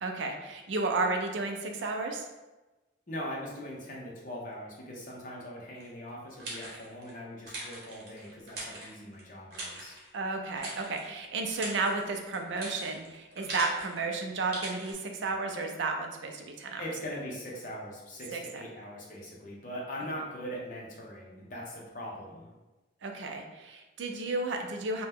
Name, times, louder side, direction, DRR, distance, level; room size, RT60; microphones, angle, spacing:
voice 1, 0.0-2.3 10.1-16.8 18.3-18.6 23.0-25.1, right 3 dB, 65° right, 3 dB, 0.4 m, -32 dB
voice 2, 3.1-10.0 16.8-22.5, equal, 40° left, -3 dB, 0.7 m, -41 dB
sound 1, 5.8-7.1 7.5-9.2 9.5-10.1 10.6-11.1 11.4-14.0 14.5-14.9, right 2 dB, 50° right, 0.9 m, -41 dB
2.8 x 2.2 x 3.5 m, 1.1 s
head